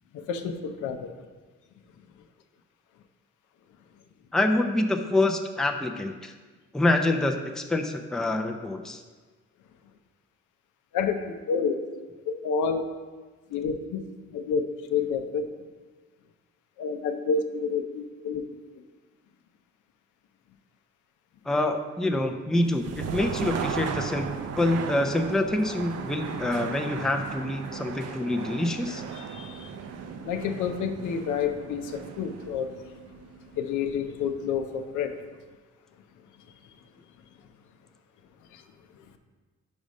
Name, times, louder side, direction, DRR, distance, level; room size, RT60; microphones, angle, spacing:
voice 1, 0.1-1.1 10.9-11.8 12.3-12.8 13.5-14.0 14.3-14.6 14.9-15.4 16.8-18.4 29.1-29.7 30.2-32.7 33.5-35.1 38.5-38.6, left 6 dB, 80° left, 6 dB, 0.6 m, -29 dB
voice 2, 4.3-6.3 6.7-9.0 21.5-29.0, left 2 dB, ahead, 4 dB, 0.4 m, -26 dB
sound 1, 22.6-34.4, right 6 dB, 60° right, 0.6 m, -36 dB
5.3 x 4.9 x 5.3 m, 1.4 s
cardioid pair, 90°, 30 cm